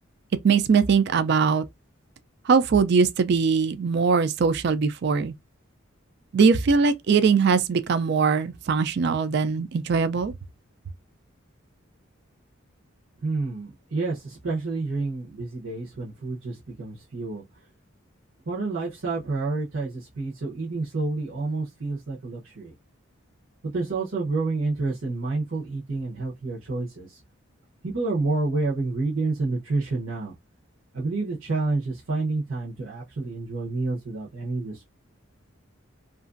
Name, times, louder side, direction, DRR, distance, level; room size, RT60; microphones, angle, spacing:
voice 1, 0.4-1.6 2.5-5.3 6.3-10.3, right 5 dB, 55° right, 0.3 m, -21 dB
voice 2, 13.2-17.4 18.5-22.7 23.6-27.2 27.8-30.3 30.9-34.8, right 3 dB, 70° right, 0.9 m, -29 dB
2.9 x 2.5 x 2.5 m
head